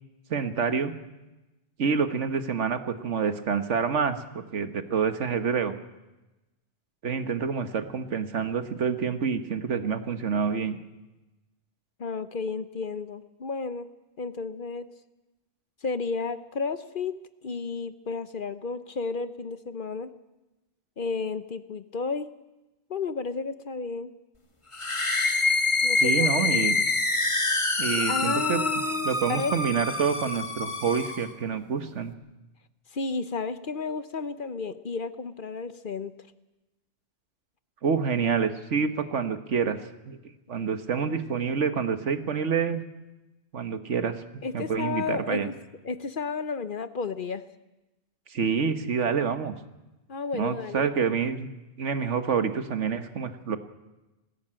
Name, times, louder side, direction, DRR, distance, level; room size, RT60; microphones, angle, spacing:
voice 1, 0.3-0.9 1.8-5.7 7.0-10.8 26.0-26.8 27.8-28.6 29.0-32.1 37.8-39.8 40.1-40.2 40.5-42.8 43.5-44.2 44.5-45.5 48.3-49.5 50.3-51.5 51.8-53.6, right 6 dB, 80° right, 10 dB, 1.6 m, -27 dB
voice 2, 12.0-13.9 14.2-14.9 15.8-17.1 17.4-20.1 21.0-22.3 22.9-24.1 25.8-26.7 28.0-29.6 32.9-36.1 44.4-45.5 45.8-47.4 50.1-50.9, left 4 dB, 50° left, 12 dB, 0.9 m, -32 dB
sound 1, 24.7-31.3, left 3 dB, 25° left, 1.6 m, -26 dB
19.5 x 16.0 x 8.9 m, 1.0 s
omnidirectional pair, 1.2 m